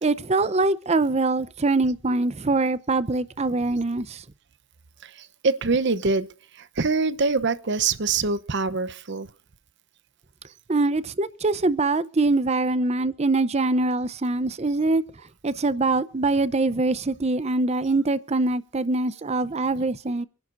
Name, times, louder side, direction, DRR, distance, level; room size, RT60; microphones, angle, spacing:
voice 1, 0.0-4.2 10.7-15.0 15.4-20.3, right 3 dB, 30° right, 0.6 m, -23 dB
voice 2, 5.0-6.3 6.5-9.3, right 4 dB, 60° right, 0.8 m, -24 dB
28.0 x 11.0 x 2.6 m
head